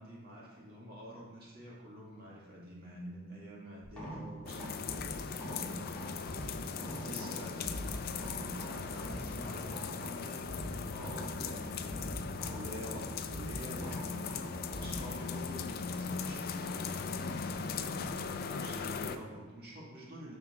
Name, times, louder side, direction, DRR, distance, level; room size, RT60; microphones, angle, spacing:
voice 1, 0.0-5.2 5.5-10.5 10.9-20.4, equal, 45° right, -5 dB, 1.9 m, -48 dB
sound 1, 3.8-18.1, equal, 5° left, 1.6 m, -45 dB
sound 2, 4.5-19.2, left 5 dB, 45° left, 0.4 m, -39 dB
6.7 x 5.8 x 3.7 m, 1.3 s
head